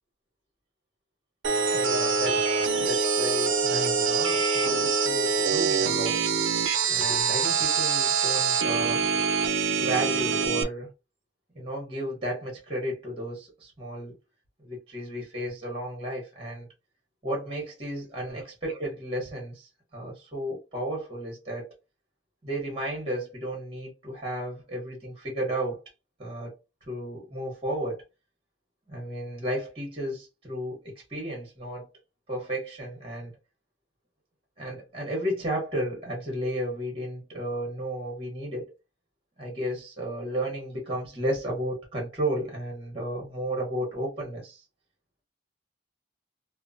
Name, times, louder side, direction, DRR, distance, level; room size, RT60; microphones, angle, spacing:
sound 1, 1.4-10.6, right 5 dB, 85° right, 0.5 m, -25 dB
voice 1, 1.7-9.1 9.8-10.9 11.5-14.1 14.6-16.7 17.2-21.7 22.4-25.8 26.2-26.6 26.9-28.0 28.9-31.9 32.3-33.3 34.6-38.7 39.4-44.6, right 1 dB, 30° right, 1.1 m, -33 dB
3.0 x 2.0 x 2.6 m
head